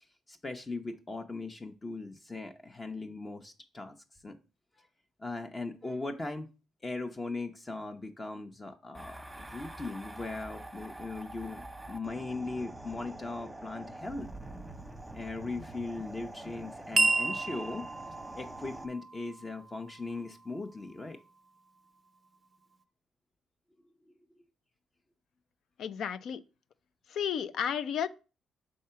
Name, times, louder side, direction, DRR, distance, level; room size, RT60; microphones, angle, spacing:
voice 1, 0.0-4.0 4.2-4.4 4.8-4.9 5.2-6.5 6.8-14.3 15.1-17.9 18.3-21.2, left 3 dB, 25° left, 0.7 m, -39 dB
sound 1, 8.9-18.9, right 1 dB, 10° right, 1.0 m, -45 dB
sound 2, 17.0-21.6, right 3 dB, 30° right, 0.4 m, -33 dB
voice 2, 25.8-26.4 27.1-28.1, left 8 dB, 70° left, 0.5 m, -32 dB
5.4 x 3.7 x 5.6 m
cardioid pair, 90°, 0 cm